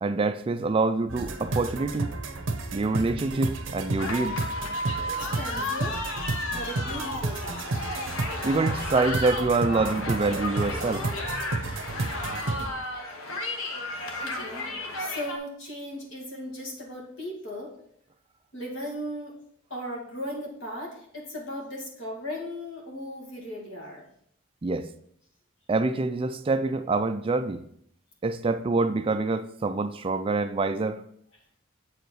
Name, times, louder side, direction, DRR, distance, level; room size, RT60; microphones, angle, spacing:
voice 1, 0.0-2.1 2.7-4.4 8.4-11.1 24.6-24.9 25.7-27.6 28.2-31.0, right 3 dB, 25° right, 0.3 m, -26 dB
sound 1, 1.1-12.7, right 2 dB, 65° right, 0.9 m, -32 dB
sound 2, 4.0-15.4, left 1 dB, 90° left, 1.1 m, -33 dB
voice 2, 5.1-6.0 6.5-7.8 14.2-14.7 15.0-17.7 18.5-19.4 19.7-24.1, equal, 70° left, 2.4 m, -37 dB
7.8 x 4.9 x 4.6 m
head